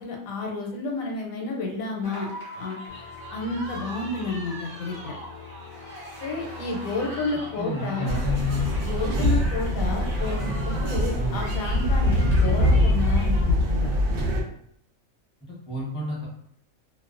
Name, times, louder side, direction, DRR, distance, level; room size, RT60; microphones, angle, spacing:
voice 1, 0.0-2.3 2.5-2.8 3.3-5.1 6.2-8.1 8.8-10.5 10.8-13.9, left 3 dB, 80° left, 1 dB, 1.0 m, -31 dB
sound 1, 2.0-13.4, equal, 45° right, 0.9 m, -40 dB
sound 2, 2.9-13.0, left 7 dB, 65° left, 0.5 m, -45 dB
voice 2, 7.6-8.7 11.1-11.5 15.5-16.3, left 2 dB, 5° right, -6 dB, 0.5 m, -30 dB
sound 3, 8.1-14.4, left 1 dB, 80° right, 1.0 m, -23 dB
2.6 x 2.1 x 2.4 m, 0.70 s
omnidirectional pair, 1.4 m